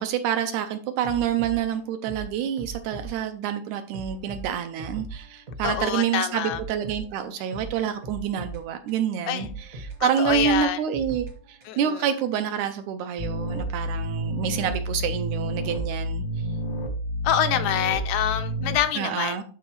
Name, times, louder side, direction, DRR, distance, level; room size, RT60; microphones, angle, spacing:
voice 1, 0.0-16.5 19.0-19.4, right 9 dB, 80° right, 1.8 m, -28 dB
sound 1, 1.0-3.2 3.4-3.6 3.9-5.9 6.1-9.0 9.4-11.9, right 2 dB, 50° right, 1.0 m, -39 dB
voice 2, 5.6-6.6 9.3-9.5 10.0-10.8 11.7-12.0 17.2-19.4, left 11 dB, 80° left, 2.0 m, -26 dB
sound 2, 13.2-18.8, right 1 dB, 55° left, 1.0 m, -29 dB
12.0 x 4.0 x 3.0 m
omnidirectional pair, 3.7 m